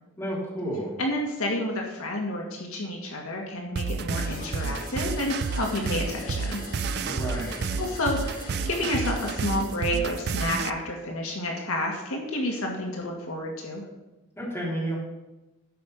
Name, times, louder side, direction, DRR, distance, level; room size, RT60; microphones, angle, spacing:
voice 1, 0.2-0.9 7.0-7.7 14.4-14.9, right 1 dB, 10° left, -6 dB, 3.3 m, -31 dB
voice 2, 1.0-6.6 7.8-13.8, left 1 dB, 70° left, 1 dB, 1.7 m, -30 dB
sound 1, 3.8-10.7, right 5 dB, 45° right, 0.4 m, -30 dB
sound 2, 4.1-10.3, left 3 dB, 40° left, 1.6 m, -41 dB
12.0 x 5.2 x 6.5 m, 1.0 s
head